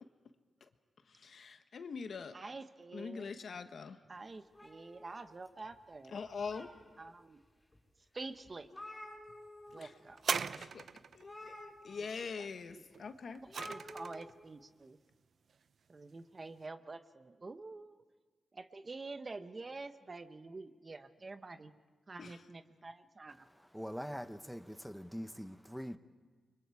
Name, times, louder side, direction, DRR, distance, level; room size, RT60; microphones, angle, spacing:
voice 1, 1.1-2.4 2.9-4.0 6.1-6.7 9.8-9.9 10.5-10.8 11.1-13.4 22.2-22.4, left 5 dB, 70° left, 1.3 m, -43 dB
voice 2, 2.3-3.3 4.1-6.2 7.0-7.4 8.1-8.7 9.7-10.2 12.0-12.1 12.4-12.5 12.7-12.8 13.7-15.0 15.9-18.0 18.5-21.7 22.1-23.5, right 3 dB, 35° right, 1.1 m, -47 dB
sound 1, 4.5-5.7 6.2-7.1 7.7-7.8 8.2-8.3 8.4-9.8 10.1-10.3 11.2-12.3 13.5-14.3, left 1 dB, 15° left, 5.4 m, -51 dB
sound 2, 10.2-11.2 12.9-14.3 15.1-15.2, right 6 dB, 70° right, 0.6 m, -38 dB
voice 3, 23.7-26.0, equal, ahead, 1.0 m, -43 dB
29.5 x 24.0 x 4.8 m
cardioid pair, 90°, 0 cm